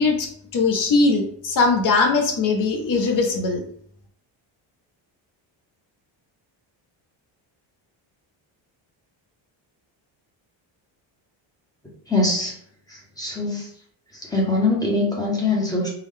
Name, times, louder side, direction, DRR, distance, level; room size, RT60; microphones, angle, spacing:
voice 1, 0.0-3.6, left 3 dB, 45° left, 3 dB, 0.7 m, -20 dB
voice 2, 12.1-12.6 12.9-13.7 14.1-15.9, left 2 dB, 10° left, -4 dB, 0.7 m, -23 dB
3.7 x 2.1 x 3.2 m, 0.62 s
cardioid pair, 165°, 46 cm